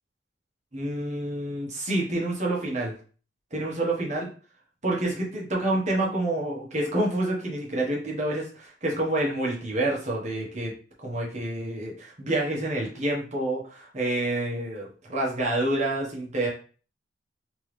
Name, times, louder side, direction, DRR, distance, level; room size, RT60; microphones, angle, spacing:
voice 1, 0.7-2.9 3.5-4.3 4.8-10.7 11.0-16.5, right 1 dB, 40° right, -3 dB, 1.2 m, -28 dB
3.3 x 3.1 x 3.3 m, 0.40 s
head